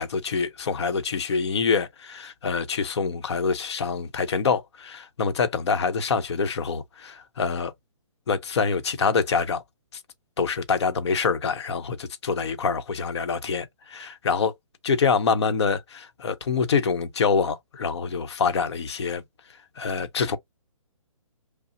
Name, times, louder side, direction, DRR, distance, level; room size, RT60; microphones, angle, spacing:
voice 1, 0.0-7.7 8.3-9.6 10.4-14.5 14.8-19.2 19.8-20.4, left 5 dB, 55° left, 0.9 m, -25 dB
5.5 x 2.0 x 2.7 m
hypercardioid pair, 155°, 17 cm